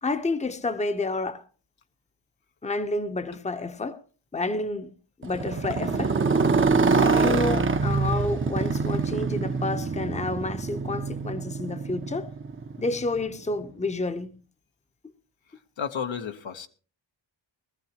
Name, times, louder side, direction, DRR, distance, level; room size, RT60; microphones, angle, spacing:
voice 1, 0.0-1.4 2.6-4.0 4.3-4.9 5.2-6.2 6.9-12.3 12.8-14.4, left 2 dB, 15° left, 0.8 m, -29 dB
Motorcycle, 5.2-13.3, right 4 dB, 30° right, 0.7 m, -25 dB
voice 2, 15.8-16.7, left 7 dB, 85° left, 1.1 m, -32 dB
20.0 x 14.5 x 2.9 m
wide cardioid pair, 100°, 45 cm